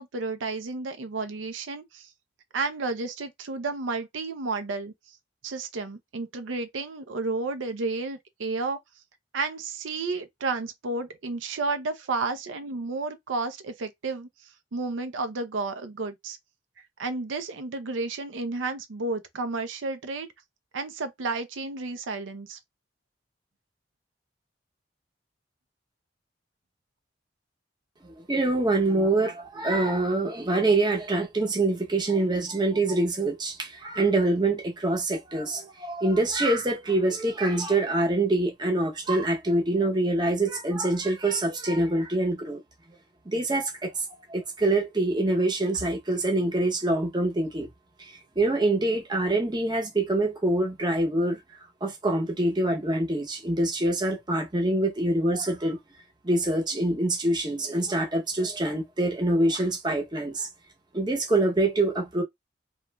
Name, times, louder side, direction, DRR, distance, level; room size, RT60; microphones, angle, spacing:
voice 1, 0.0-2.1 2.5-4.9 5.4-8.8 9.3-14.3 14.7-16.4 17.0-20.3 20.7-22.6, right 3 dB, 90° right, 0.5 m, -31 dB
voice 2, 28.1-42.6 43.3-43.9 44.3-47.7 48.0-51.4 51.8-55.8 56.2-60.5 60.9-62.2, right 2 dB, 25° right, 0.7 m, -25 dB
3.0 x 2.4 x 2.2 m
head